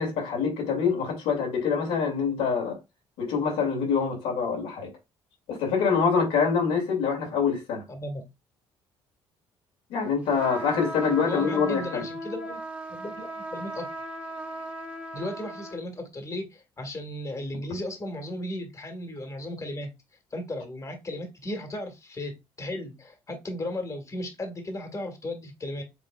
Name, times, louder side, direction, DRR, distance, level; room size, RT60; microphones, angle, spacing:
voice 1, 0.0-2.8 3.2-4.9 5.5-7.8 9.9-12.0, left 5 dB, 85° left, 2.3 m, -25 dB
voice 2, 7.9-8.2 11.3-12.6 12.9-13.8 15.1-19.9 20.3-25.8, left 1 dB, 30° left, 1.6 m, -35 dB
sound 1, 10.4-15.8, right 1 dB, 15° right, 1.4 m, -37 dB
5.8 x 3.5 x 2.2 m
supercardioid pair, 70°, 11 cm